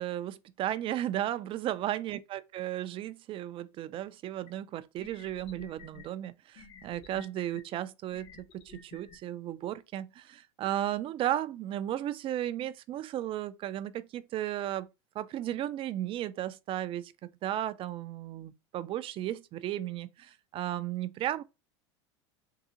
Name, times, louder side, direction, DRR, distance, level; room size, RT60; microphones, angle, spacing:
voice 1, 0.0-14.9 15.2-17.1 17.4-21.4, right 12 dB, 35° right, 0.4 m, -35 dB
sound 1, 4.5-4.6 5.0-6.1 6.6-7.6 8.1-9.2, left 5 dB, 40° left, 1.0 m, -51 dB
3.7 x 2.3 x 2.8 m
hypercardioid pair, 90°, 15 cm